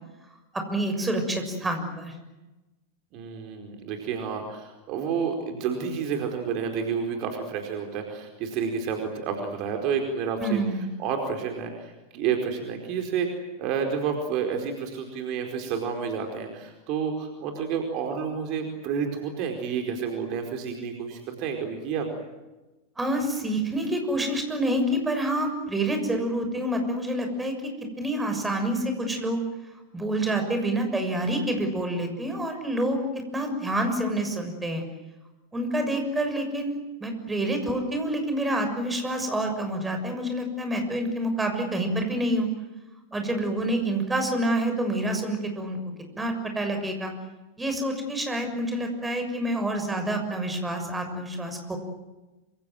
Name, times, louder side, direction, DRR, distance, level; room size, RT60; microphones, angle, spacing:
voice 1, 0.5-2.2 10.4-10.9 23.0-27.5 28.0-29.4 29.9-33.0 33.3-34.8 35.5-42.5 43.1-45.8 46.2-47.1 47.6-51.8, right 1 dB, 10° right, 5 dB, 6.7 m, -27 dB
voice 2, 3.1-10.6 11.0-22.1, right 6 dB, 40° right, 4 dB, 4.7 m, -30 dB
27.0 x 26.5 x 7.8 m, 1.1 s
figure-of-eight pair, 90°, 0 cm